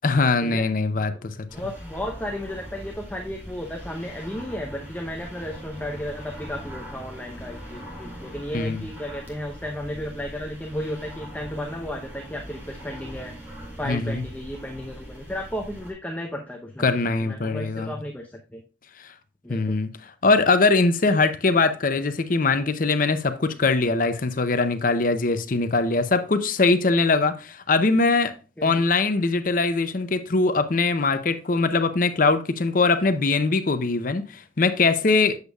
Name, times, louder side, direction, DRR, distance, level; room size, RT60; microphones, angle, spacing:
voice 1, 0.0-1.3 8.5-8.8 13.9-14.2 16.8-18.0 19.0-19.1 19.5-19.9 20.2-28.3 28.6-35.4, left 3 dB, 45° left, 0.6 m, -22 dB
voice 2, 1.5-13.3 13.8-16.8 17.2-18.6 19.4-19.8 28.6-28.9, left 1 dB, 10° left, 0.7 m, -34 dB
sound 1, 1.5-15.9, equal, 10° right, 2.2 m, -41 dB
8.0 x 6.7 x 2.3 m
head